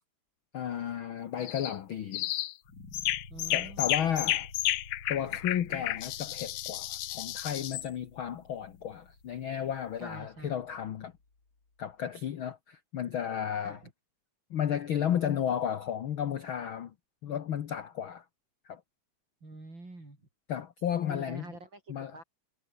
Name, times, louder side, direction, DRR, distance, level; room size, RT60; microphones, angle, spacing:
voice 1, 0.5-2.3 3.5-4.5 5.1-11.1 11.8-13.8 14.5-16.9 17.2-18.2 18.6-18.8 20.5-21.4 21.9-22.2, left 9 dB, 55° left, 1.6 m, -33 dB
sound 1, 1.4-1.8 2.1-2.5 2.9-7.9, left 15 dB, 85° left, 2.3 m, -32 dB
sound 2, 2.6-11.7, left 3 dB, 40° left, 5.0 m, -52 dB
voice 2, 3.3-4.1 7.4-7.7 10.0-10.6 13.6-13.9 19.4-20.2 21.1-22.2, right 2 dB, 40° right, 7.9 m, -47 dB
omnidirectional pair, 3.3 m